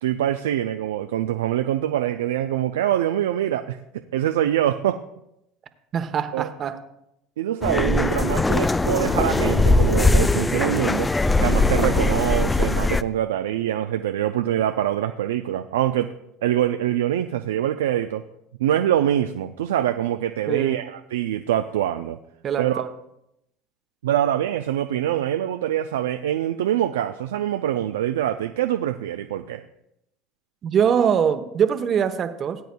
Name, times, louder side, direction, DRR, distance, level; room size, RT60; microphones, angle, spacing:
voice 1, 0.0-5.0 6.3-6.5 7.4-11.1 11.4-16.1 16.4-18.2 18.6-22.2 22.6-22.8 24.0-29.6, right 11 dB, 85° right, 8 dB, 0.4 m, -24 dB
voice 2, 5.9-6.8 20.5-20.8 22.4-22.9 30.6-32.6, right 8 dB, 45° right, 9 dB, 0.9 m, -23 dB
sound 1, 7.6-13.0, left 2 dB, 15° left, 0.4 m, -20 dB
18.5 x 9.1 x 2.3 m, 0.81 s
hypercardioid pair, 75°, 0 cm